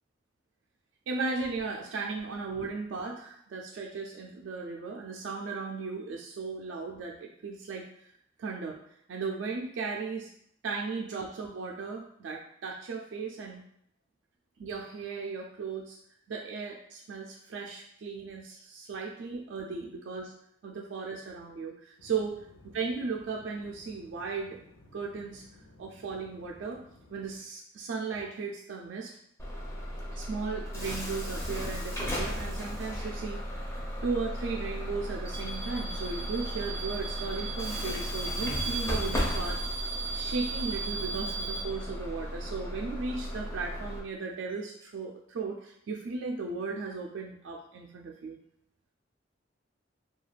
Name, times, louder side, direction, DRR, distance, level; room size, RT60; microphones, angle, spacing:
voice 1, 1.1-8.1 8.4-8.8 9.1-10.3 10.6-13.6 14.6-16.0 16.3-20.3 20.6-22.5 22.7-24.6 24.9-25.4 25.8-26.8 27.1-29.1 30.1-33.8 34.0-39.9 40.1-48.4, right 4 dB, 70° right, -1 dB, 0.3 m, -36 dB
sound 1, 22.0-27.4, left 2 dB, 85° left, 0.5 m, -57 dB
Bus / Alarm, 29.4-44.0, right 1 dB, 15° left, 0.4 m, -34 dB
2.3 x 2.3 x 3.2 m, 0.72 s
head